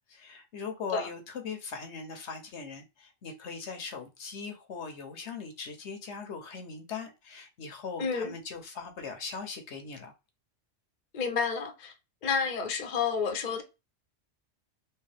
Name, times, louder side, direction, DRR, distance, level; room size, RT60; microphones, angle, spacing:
voice 1, 0.1-10.1, left 5 dB, 70° left, 1.1 m, -40 dB
voice 2, 8.0-8.3 11.1-11.9 12.2-13.6, left 5 dB, 45° left, 0.7 m, -30 dB
3.3 x 3.1 x 3.3 m
omnidirectional pair, 1.2 m